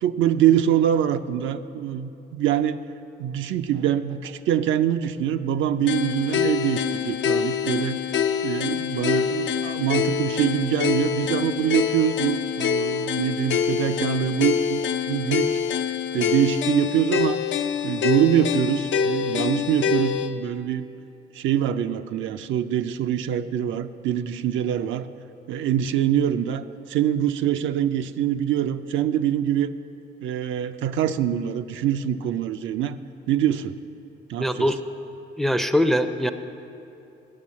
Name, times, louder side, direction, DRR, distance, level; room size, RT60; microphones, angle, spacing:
voice 1, 0.0-2.8 3.2-8.0 8.4-14.8 15.1-15.6 16.1-17.4 17.8-20.9 21.3-25.1 25.5-29.7 30.2-33.0 33.3-33.8 34.3-34.7, right 10 dB, 80° right, 9 dB, 0.4 m, -24 dB
sound 1, 5.9-20.3, left 7 dB, 70° left, 0.5 m, -25 dB
voice 2, 34.4-34.8 35.4-36.3, equal, ahead, 10 dB, 0.4 m, -22 dB
9.8 x 6.8 x 7.3 m, 2.8 s
cardioid pair, 90°, 20 cm